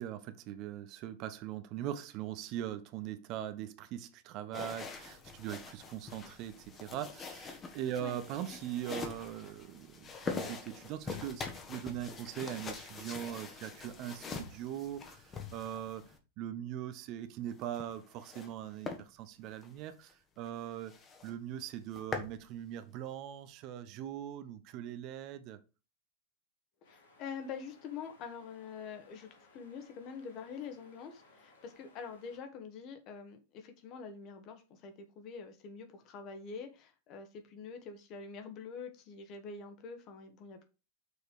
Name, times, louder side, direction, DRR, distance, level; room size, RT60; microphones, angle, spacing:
voice 1, 0.0-25.6, right 11 dB, 40° right, 0.7 m, -41 dB
sound 1, 4.5-16.2 17.5-18.5 18.8-19.0 19.5-19.7 20.1-20.2 20.5-20.6 20.9-21.3 21.7-22.4, left 4 dB, 20° left, 1.4 m, -44 dB
sound 2, 26.8-32.4, left 3 dB, 65° left, 2.4 m, -63 dB
voice 2, 26.9-40.6, left 5 dB, 40° left, 1.6 m, -45 dB
6.4 x 4.9 x 4.8 m
figure-of-eight pair, 90°, 0 cm